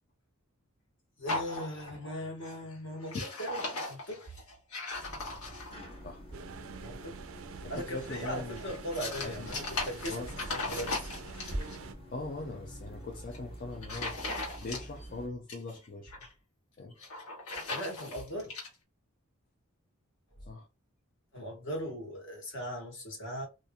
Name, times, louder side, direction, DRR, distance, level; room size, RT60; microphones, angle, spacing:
voice 1, 1.2-3.6 3.9-4.3 6.8-7.2 7.7-11.1 17.7-18.5 21.3-23.5, equal, 60° left, 1.3 m, -39 dB
sound 1, 1.3-2.1 2.4-2.7 3.0-5.9 7.7-11.8 13.1-13.4 13.8-15.1 15.3-16.3 16.9-18.7, left 2 dB, 85° left, 1.3 m, -38 dB
sound 2, 5.0-15.3, right 1 dB, 25° left, 1.0 m, -46 dB
sound 3, 6.3-11.9, right 4 dB, 70° right, 0.4 m, -45 dB
voice 2, 7.6-8.6 9.2-9.6 10.1-10.3 12.1-14.2 14.6-16.3 16.8-17.0 20.5-20.7, left 2 dB, 40° left, 0.5 m, -41 dB
2.8 x 2.4 x 2.3 m
head